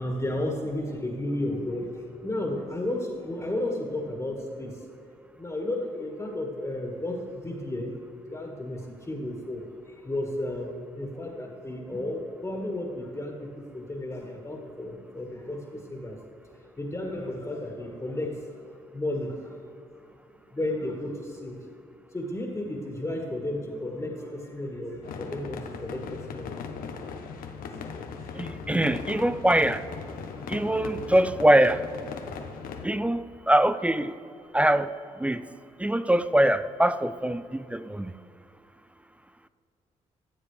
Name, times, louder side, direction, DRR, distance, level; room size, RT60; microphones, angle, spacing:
voice 1, 0.0-4.9 5.4-8.0 8.3-16.2 16.5-18.6 18.9-19.7 20.5-21.6 22.1-26.9 27.8-28.6, left 1 dB, 20° left, 0 dB, 1.8 m, -33 dB
sound 1, 25.0-32.9, left 5 dB, 75° left, 0.8 m, -38 dB
voice 2, 28.3-29.8 30.5-31.8 32.8-34.1 34.5-34.9 35.2-35.4 35.8-38.1, right 1 dB, 10° right, 13 dB, 0.4 m, -23 dB
14.5 x 7.3 x 3.4 m, 2.5 s
supercardioid pair, 55°, 15 cm